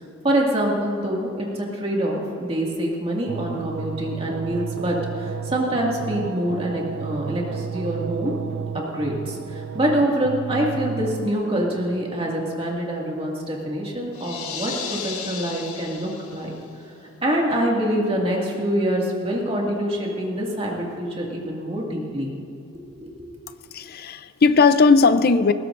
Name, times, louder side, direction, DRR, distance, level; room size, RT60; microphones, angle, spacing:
voice 1, 0.2-8.3 8.7-16.5 17.2-22.3 22.7-23.3, right 1 dB, 25° right, -2 dB, 2.1 m, -25 dB
sound 1, 3.3-11.3, right 6 dB, 55° right, 0.4 m, -32 dB
sound 2, 14.1-16.6, left 6 dB, 85° left, 1.6 m, -34 dB
voice 2, 23.7-25.5, left 4 dB, 45° left, 12 dB, 0.5 m, -17 dB
20.0 x 16.5 x 2.6 m, 2.9 s
head